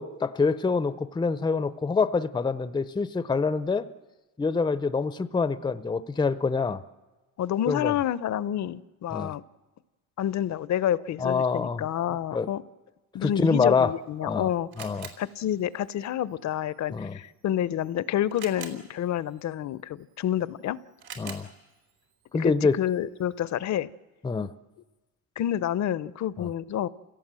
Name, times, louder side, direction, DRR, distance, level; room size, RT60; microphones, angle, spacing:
voice 1, 0.0-3.8 4.4-6.8 7.7-7.9 9.1-9.3 11.2-11.8 12.3-12.5 13.2-13.9 14.2-14.5 14.8-15.1 16.9-17.2 21.2-21.5 22.3-22.7 24.2-24.5 26.4-26.5, left 4 dB, 10° left, 13 dB, 0.6 m, -26 dB
voice 2, 7.4-9.4 10.2-12.6 13.1-14.7 15.2-20.8 21.2-21.3 22.3-23.9 25.4-26.9, left 11 dB, 50° left, 17 dB, 0.7 m, -29 dB
Camera, 13.8-23.6, right 7 dB, 75° right, 3.6 m, -50 dB
29.0 x 17.0 x 7.6 m, 1.2 s
cardioid pair, 105°, 37 cm